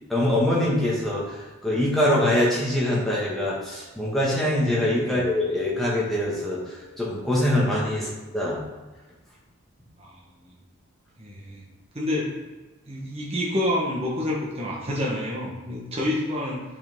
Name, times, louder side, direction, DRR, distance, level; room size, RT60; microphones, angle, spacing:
voice 1, 0.1-6.6 7.0-8.1 8.3-8.6, left 1 dB, ahead, -7 dB, 1.7 m, -23 dB
voice 2, 11.2-11.6 11.9-12.3 12.9-16.6, left 1 dB, 25° right, -4 dB, 1.3 m, -28 dB
7.0 x 5.7 x 3.7 m, 1.2 s
head